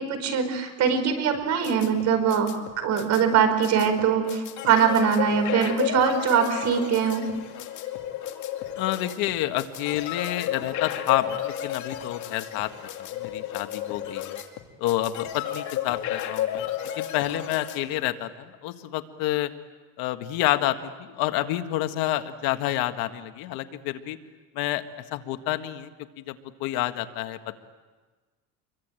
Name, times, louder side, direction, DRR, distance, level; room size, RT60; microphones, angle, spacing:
voice 1, 0.0-2.5 2.8-7.3, right 7 dB, 50° right, 8 dB, 4.6 m, -22 dB
sound 1, 1.3-17.8, left 11 dB, 50° left, 2.5 m, -33 dB
voice 2, 8.8-12.7 13.1-14.4 14.8-16.7 17.0-19.5 20.0-24.2 24.5-24.8 25.1-25.9 26.2-27.6, left 14 dB, 70° left, 8 dB, 1.7 m, -29 dB
27.5 x 23.0 x 9.0 m, 1.3 s
cardioid pair, 165°, 37 cm